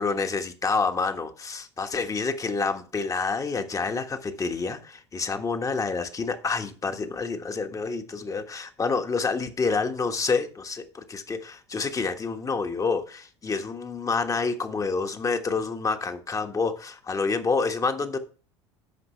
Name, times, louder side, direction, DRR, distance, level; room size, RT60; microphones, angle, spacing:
voice 1, 0.0-18.2, left 4 dB, 20° left, 1.4 m, -28 dB
14.0 x 5.3 x 3.2 m
hypercardioid pair, 75°, 15 cm